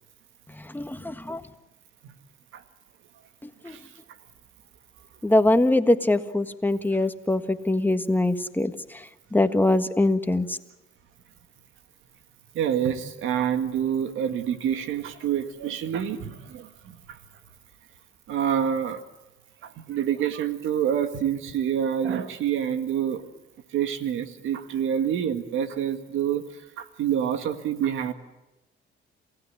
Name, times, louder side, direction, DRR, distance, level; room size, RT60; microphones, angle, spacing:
voice 1, 0.7-1.4 5.2-8.7 9.3-10.6, left 2 dB, 10° left, 8 dB, 1.5 m, -22 dB
voice 2, 12.5-17.2 18.3-19.0 19.6-23.2 23.7-26.4 26.8-28.1, right 9 dB, 85° right, 8 dB, 2.0 m, -27 dB
28.0 x 16.5 x 9.7 m, 1.0 s
cardioid pair, 90°, 20 cm